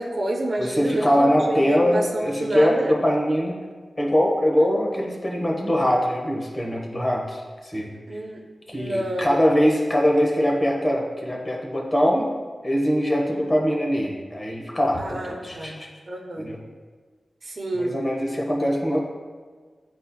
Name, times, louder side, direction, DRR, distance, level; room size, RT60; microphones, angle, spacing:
voice 1, 0.0-3.0 4.6-4.7 8.1-8.4 8.7-9.4 15.0-15.8 16.1-16.5 17.4-17.9, right 1 dB, 55° right, 0 dB, 0.9 m, -29 dB
voice 2, 0.6-3.5 4.0-7.9 8.7-12.3 12.6-15.9 16.4-16.6 17.8-19.0, equal, 25° left, -1 dB, 1.1 m, -22 dB
9.8 x 4.2 x 2.3 m, 1.5 s
wide cardioid pair, 105°, 0 cm